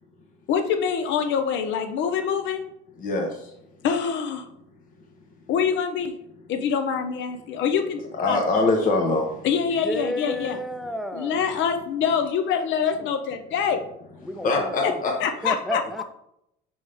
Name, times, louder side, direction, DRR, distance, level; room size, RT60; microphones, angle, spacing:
voice 1, 0.5-2.6 3.8-4.5 5.5-6.1 6.5-8.4 9.4-10.6 11.1-13.8 14.8-14.9 15.2-15.8, left 7 dB, 60° left, 7 dB, 0.8 m, -25 dB
voice 2, 3.0-3.5 8.2-9.4 14.4-15.1, left 3 dB, 40° left, 1 dB, 1.1 m, -23 dB
voice 3, 9.8-11.4 13.0-13.1 14.2-15.0 15.4-16.0, equal, ahead, 8 dB, 0.5 m, -32 dB
5.4 x 5.1 x 3.5 m, 0.78 s
cardioid pair, 120°, 21 cm